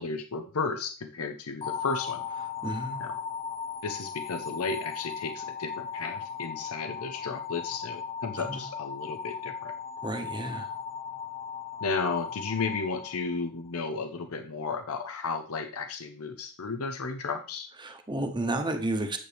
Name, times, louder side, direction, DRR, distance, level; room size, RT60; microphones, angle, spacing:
voice 1, 0.0-2.2 3.0-3.1 3.8-9.7 11.8-17.7, left 4 dB, 80° left, 7 dB, 0.7 m, -33 dB
sound 1, 1.6-13.8, left 7 dB, 30° left, 0.8 m, -37 dB
voice 2, 2.6-3.0 8.4-8.6 10.0-10.7 17.8-19.2, right 2 dB, 20° right, 5 dB, 1.1 m, -31 dB
9.5 x 7.7 x 3.5 m, 0.40 s
head